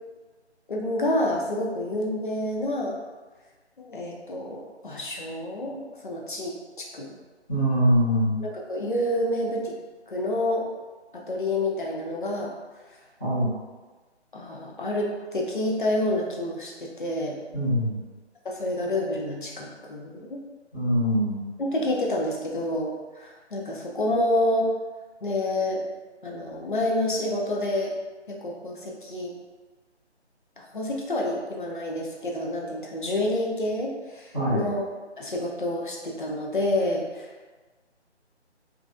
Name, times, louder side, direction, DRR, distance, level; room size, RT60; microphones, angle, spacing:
voice 1, 0.7-2.9 3.8-7.1 8.4-9.8 10.1-10.7 11.1-12.5 14.3-17.4 18.4-20.4 21.6-24.7 25.2-25.8 26.2-27.9 28.3-29.3 30.6-34.8 35.2-37.3, left 1 dB, 45° left, -1 dB, 0.5 m, -28 dB
voice 2, 7.5-8.3 13.2-13.5 17.5-18.0 20.7-21.4 34.3-34.7, equal, 15° right, -17 dB, 0.6 m, -23 dB
3.0 x 2.5 x 2.5 m, 1.3 s
figure-of-eight pair, 150°, 34 cm